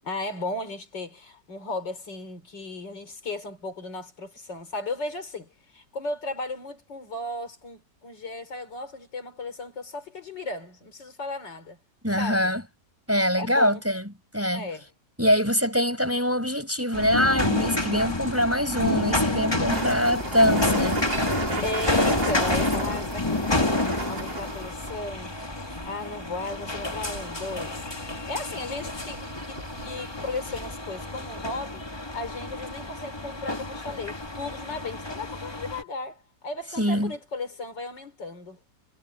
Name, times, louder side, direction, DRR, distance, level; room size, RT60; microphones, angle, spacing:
voice 1, 0.0-5.5 5.7-11.8 12.2-12.5 13.4-13.8 14.5-14.9 21.6-27.8 28.3-38.6, left 2 dB, 75° left, 4.5 m, -35 dB
voice 2, 12.0-12.6 13.1-14.7 15.2-21.1 36.8-37.1, equal, 5° right, 4.8 m, -24 dB
sound 1, 16.9-35.8, left 2 dB, 15° left, 1.7 m, -29 dB
sound 2, 19.7-30.7, right 3 dB, 90° right, 4.5 m, -37 dB
omnidirectional pair, 1.9 m